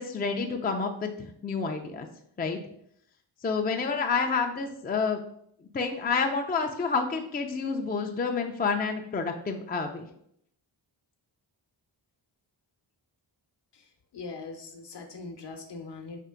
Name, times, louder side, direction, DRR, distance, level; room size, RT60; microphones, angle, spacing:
voice 1, 0.0-2.1 2.4-2.6 3.4-5.2 5.7-10.1, left 4 dB, 20° left, 4 dB, 0.4 m, -29 dB
voice 2, 14.1-16.2, left 3 dB, 55° left, 5 dB, 0.9 m, -41 dB
4.5 x 2.4 x 3.7 m, 0.69 s
cardioid pair, 50°, 49 cm